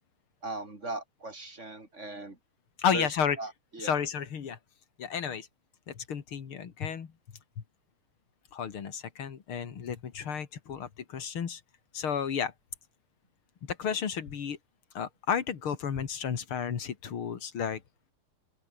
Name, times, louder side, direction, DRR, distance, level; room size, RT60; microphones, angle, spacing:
voice 1, 0.4-2.4 2.9-3.1 3.4-3.9, right 2 dB, 30° right, 4.1 m, -38 dB
voice 2, 2.8-3.4 3.8-4.6 5.0-5.5 5.9-7.1 8.5-11.6 11.9-12.5 13.6-14.6 14.9-17.8, left 7 dB, 75° left, 2.9 m, -32 dB
open air
omnidirectional pair, 2.4 m